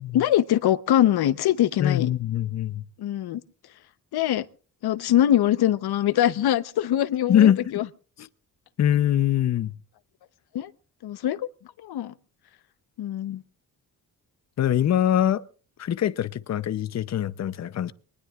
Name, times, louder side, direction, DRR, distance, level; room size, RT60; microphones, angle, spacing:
voice 1, 0.1-2.1 3.0-3.4 4.1-4.4 4.8-7.9 10.5-10.7 11.0-11.5 11.8-12.1 13.0-13.4, left 12 dB, 75° left, 0.9 m, -23 dB
voice 2, 1.8-2.8 7.3-7.6 8.8-9.7 14.6-15.4 15.8-17.9, left 10 dB, 45° left, 0.7 m, -22 dB
23.5 x 19.5 x 2.4 m
cardioid pair, 135°, 39 cm